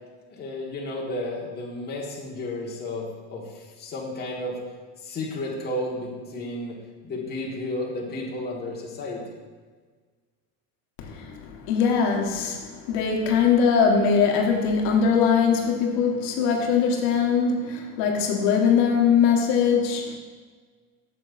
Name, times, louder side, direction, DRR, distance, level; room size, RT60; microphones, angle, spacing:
voice 1, 0.3-4.6 5.0-6.8 7.0-9.4, left 1 dB, 25° left, -3 dB, 1.3 m, -32 dB
voice 2, 11.0-20.2, left 6 dB, 70° left, 1 dB, 1.2 m, -21 dB
8.6 x 6.8 x 2.5 m, 1.5 s
supercardioid pair, 140°, 42 cm